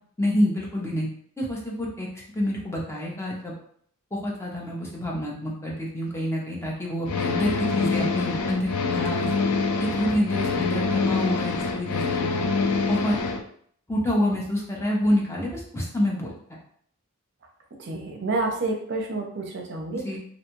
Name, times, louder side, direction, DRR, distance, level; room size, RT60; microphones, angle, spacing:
voice 1, 0.2-1.1 1.4-2.1 2.3-3.6 4.1-9.3 9.8-12.4 12.9-13.2 13.9-16.6 20.0-20.2, left 1 dB, 10° left, -3 dB, 0.5 m, -27 dB
sound 1, 7.1-13.4, left 4 dB, 85° left, 0.3 m, -25 dB
voice 2, 17.8-20.0, right 2 dB, 50° right, 1 dB, 0.5 m, -29 dB
2.5 x 2.2 x 2.9 m, 0.63 s
head